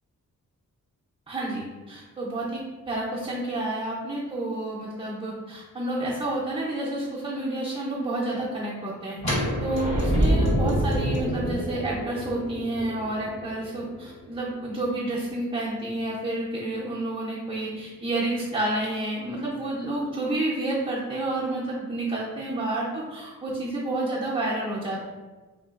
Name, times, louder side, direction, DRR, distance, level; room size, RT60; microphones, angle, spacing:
voice 1, 1.3-2.6 2.9-25.0, right 1 dB, 15° right, -7 dB, 0.5 m, -30 dB
sound 1, 9.2-15.0, equal, 55° left, 1.2 m, -27 dB
3.7 x 2.4 x 2.4 m, 1.3 s
wide cardioid pair, 100°, 33 cm